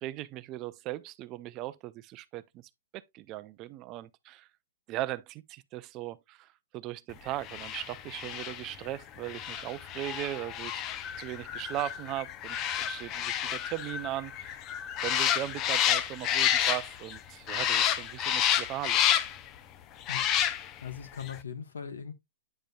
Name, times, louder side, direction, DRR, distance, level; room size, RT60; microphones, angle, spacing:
voice 1, 0.0-2.4 2.9-4.5 4.9-6.5 6.7-10.8 11.2-14.6 15.0-19.0, right 15 dB, 30° right, 0.4 m, -38 dB
sound 1, 7.4-17.2 17.5-19.5 20.0-20.9 21.2-21.3, left 10 dB, 25° left, 0.5 m, -30 dB
voice 2, 20.1-22.1, left 7 dB, 85° left, 1.3 m, -41 dB
8.9 x 5.2 x 2.3 m
hypercardioid pair, 145°, 0 cm